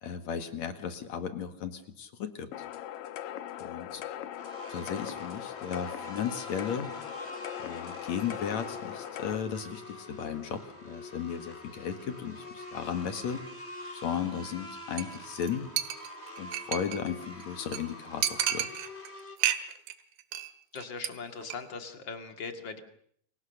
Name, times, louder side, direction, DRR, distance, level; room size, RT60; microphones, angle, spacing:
voice 1, 0.0-2.7 3.6-4.0 4.7-6.9 7.6-13.4 13.9-15.7 16.4-18.7, left 7 dB, 55° left, 8 dB, 2.8 m, -35 dB
sound 1, 2.5-9.4, left 11 dB, 75° left, 2.8 m, -40 dB
sound 2, 4.4-19.4, left 1 dB, 20° left, 3.0 m, -45 dB
Chink clink, 15.0-15.2 15.4-15.5 15.8-17.1 17.4-17.5 17.7-17.8 18.2-19.1 19.4-19.9 20.2-20.5 20.8-21.1 21.4-21.6, right 11 dB, 90° right, 3.2 m, -31 dB
voice 2, 20.7-22.8, left 4 dB, 35° left, 7 dB, 2.5 m, -40 dB
29.0 x 23.5 x 6.7 m, 0.66 s
omnidirectional pair, 4.1 m